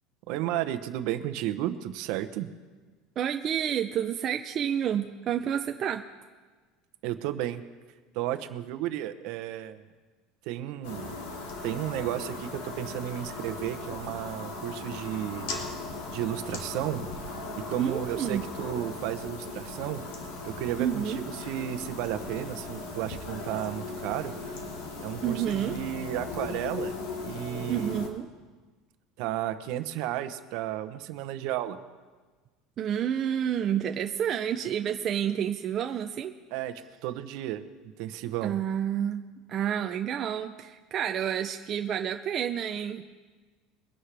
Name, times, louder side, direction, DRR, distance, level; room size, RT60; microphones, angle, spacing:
voice 1, 0.3-2.5 7.0-7.6 8.1-9.8 10.4-11.1 11.6-15.5 16.1-20.0 20.4-24.6 25.0-26.9 27.2-28.0 29.2-31.8 36.5-37.6 38.0-38.6, right 12 dB, 60° right, 10 dB, 0.9 m, -33 dB
voice 2, 3.2-6.0 17.8-18.4 20.8-21.2 25.2-25.8 27.7-28.3 32.8-36.3 38.4-39.2 39.5-43.0, right 9 dB, 30° right, 5 dB, 0.5 m, -29 dB
sound 1, 10.8-28.1, left 3 dB, 80° left, 2.7 m, -38 dB
22.5 x 11.0 x 3.4 m, 1.4 s
cardioid pair, 170°, 0 cm